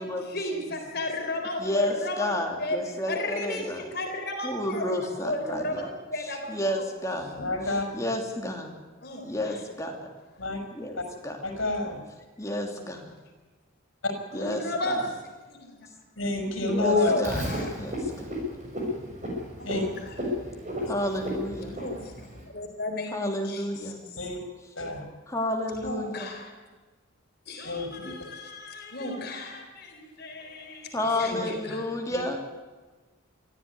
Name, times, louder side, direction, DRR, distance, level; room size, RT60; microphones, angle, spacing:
voice 1, 0.0-2.8 3.1-4.9 5.2-6.9 9.0-9.6 14.3-15.0 15.5-15.8 16.9-17.8 19.6-20.3 21.7-23.9 25.8-26.5 27.5-31.9, left 1 dB, 50° left, 3 dB, 4.0 m, -34 dB
voice 2, 1.6-3.8 4.4-5.9 6.5-8.7 9.2-10.1 10.7-11.4 12.4-13.1 14.3-15.0 16.6-17.4 17.8-18.3 20.9-21.7 23.1-24.0 25.3-26.3 30.9-32.4, left 1 dB, 15° left, 2 dB, 3.0 m, -31 dB
voice 3, 7.4-7.8 10.4-10.6 11.4-12.0 14.0-14.1 16.2-17.1 19.6-19.9 24.2-24.4 24.8-25.0 27.7-28.1 32.1-32.2, left 2 dB, 70° left, 4 dB, 5.8 m, -28 dB
Frog, 17.2-22.4, left 1 dB, 35° right, 6.4 m, -33 dB
24.0 x 15.0 x 9.9 m, 1.3 s
head